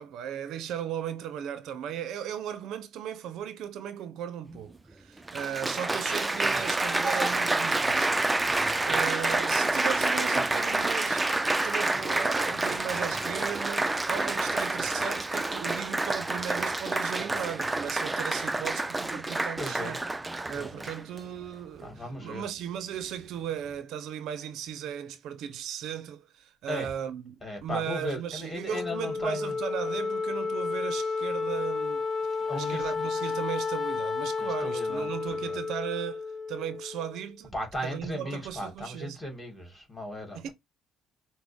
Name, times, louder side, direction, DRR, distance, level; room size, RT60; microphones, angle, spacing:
voice 1, 0.0-8.2 8.5-20.0 20.5-32.0 32.5-37.5 37.8-39.2 40.3-40.5, right 9 dB, 70° right, 0.5 m, -37 dB
Applause, 4.5-4.6 5.3-21.2 21.9-22.3, right 2 dB, 15° right, 0.4 m, -28 dB
voice 2, 10.3-10.8 19.6-20.0 20.5-20.9 21.8-22.4 26.7-26.9 27.4-29.5 32.5-33.0 34.4-35.6 37.5-40.5, left 1 dB, 15° left, 2.3 m, -37 dB
Wind instrument woodwind instrument, 28.7-37.2, left 4 dB, 35° left, 0.7 m, -31 dB
5.9 x 2.0 x 3.5 m
supercardioid pair, 80°, 0 cm